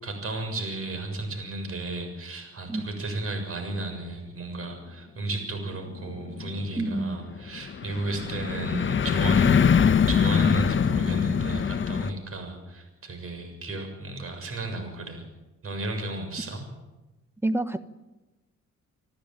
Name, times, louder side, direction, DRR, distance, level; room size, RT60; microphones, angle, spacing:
voice 1, 0.0-9.5 10.1-15.2 15.6-16.7, right 2 dB, 50° right, 6 dB, 6.9 m, -34 dB
sound 1, 5.7-12.1, left 7 dB, 40° left, 1.1 m, -23 dB
voice 2, 6.8-7.2 17.4-17.9, right 2 dB, 10° right, 12 dB, 1.3 m, -28 dB
27.0 x 13.5 x 9.1 m, 1.1 s
cardioid pair, 90°, 30 cm